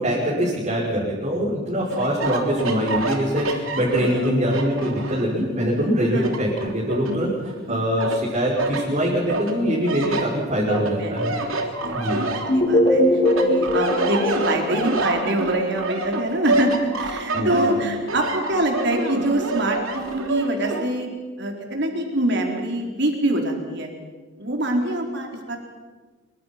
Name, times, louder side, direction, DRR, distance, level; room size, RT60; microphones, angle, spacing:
voice 1, 0.0-7.3 7.7-11.3 11.9-12.2 17.3-17.5, equal, 35° right, -6 dB, 5.5 m, -23 dB
sound 1, 1.9-5.4 5.8-7.6 8.0-8.8 9.3-12.9 13.2-20.8, right 2 dB, 85° right, 3.4 m, -27 dB
voice 2, 10.9-11.5 11.8-21.1 21.4-23.9 24.4-25.6, right 1 dB, 55° right, 2 dB, 4.3 m, -25 dB
sound 2, 12.5-15.4, left 1 dB, 35° left, 5.8 m, -20 dB
26.0 x 24.0 x 6.0 m, 1.4 s
head